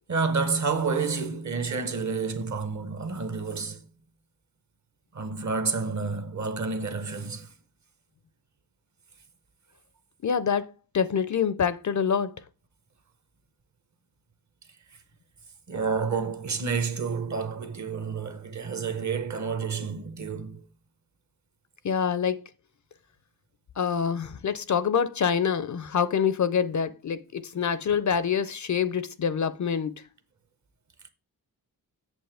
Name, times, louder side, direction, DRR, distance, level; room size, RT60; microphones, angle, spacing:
voice 1, 0.1-3.9 5.1-7.5 15.7-20.7, right 4 dB, 45° right, 0.9 m, -29 dB
voice 2, 10.2-12.3 21.8-22.4 23.8-30.1, left 7 dB, 50° left, 0.5 m, -26 dB
7.9 x 7.1 x 3.3 m
wide cardioid pair, 175°, 39 cm